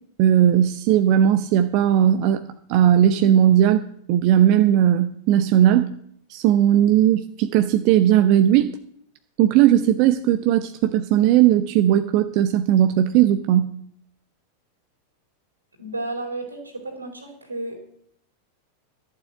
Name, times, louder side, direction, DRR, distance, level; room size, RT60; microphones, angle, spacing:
voice 1, 0.2-2.4 2.7-5.9 6.3-8.8 9.4-13.7, right 11 dB, 45° right, 9 dB, 0.8 m, -17 dB
voice 2, 15.8-17.8, right 2 dB, 80° right, 2 dB, 4.2 m, -32 dB
12.5 x 7.6 x 7.6 m, 0.70 s
figure-of-eight pair, 90°, 0 cm